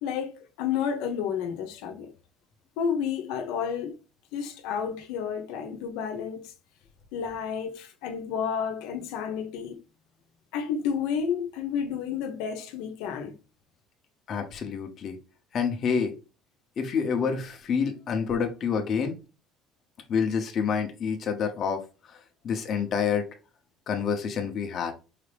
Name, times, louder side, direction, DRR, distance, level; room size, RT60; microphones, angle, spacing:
voice 1, 0.0-2.1 2.8-4.0 4.3-6.5 7.1-9.8 10.5-13.4, left 7 dB, 90° left, 0.8 m, -31 dB
voice 2, 14.3-15.2 15.5-16.1 16.8-19.1 20.1-21.8 22.1-22.2 22.4-23.2 23.9-24.9, left 6 dB, 35° left, 0.8 m, -27 dB
4.8 x 2.7 x 3.3 m
cardioid pair, 170°, 0 cm